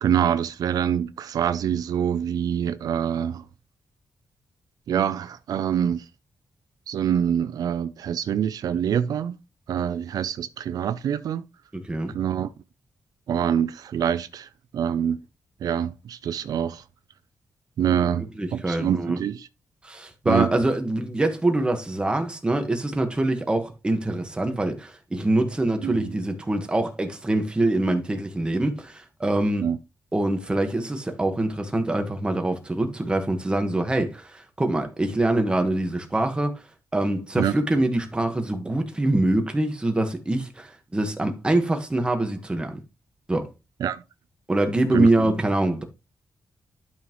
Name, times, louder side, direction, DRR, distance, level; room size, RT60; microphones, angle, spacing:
voice 1, 0.0-3.5 4.9-6.1 6.9-9.4 9.7-11.5 12.1-12.5 13.3-15.2 15.6-16.8 17.8-18.2 18.5-19.5 20.3-20.5 25.8-26.2 29.6-29.8 37.4-37.5 43.8-44.0 44.9-45.3, right 9 dB, 85° right, 0.5 m, -25 dB
voice 2, 11.7-12.1 18.1-19.2 19.8-29.6 30.1-36.5 36.9-42.8 43.3-43.5 44.5-45.8, right 2 dB, 15° right, 1.5 m, -24 dB
11.5 x 5.5 x 3.1 m
wide cardioid pair, 145°, 6 cm